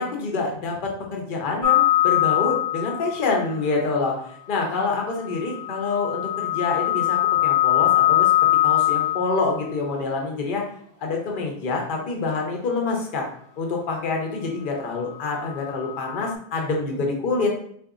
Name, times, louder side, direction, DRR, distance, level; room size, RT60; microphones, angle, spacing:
voice 1, 0.0-8.3 8.6-10.6 11.0-13.2 13.6-17.5, left 3 dB, 60° left, 1 dB, 0.8 m, -26 dB
sound 1, 1.6-3.3 5.3-9.6 15.6-16.3, left 14 dB, 25° left, 0.5 m, -22 dB
3.7 x 2.6 x 2.4 m, 0.65 s
omnidirectional pair, 1.0 m